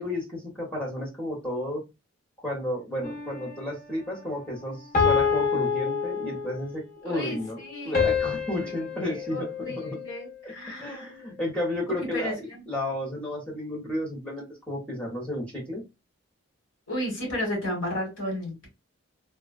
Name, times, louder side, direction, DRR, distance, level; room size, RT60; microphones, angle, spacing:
voice 1, 0.0-1.8 2.4-7.6 7.8-10.0 10.4-10.5 10.8-15.8, left 1 dB, 5° left, -3 dB, 0.9 m, -32 dB
sound 1, 3.0-3.7 4.9-6.7 7.9-10.4, left 6 dB, 40° left, 0.8 m, -27 dB
voice 2, 7.1-8.2 8.6-8.7 9.0-11.1 12.1-12.6 16.9-18.7, equal, 65° left, 0 dB, 1.6 m, -33 dB
3.3 x 2.3 x 2.3 m, 0.24 s
head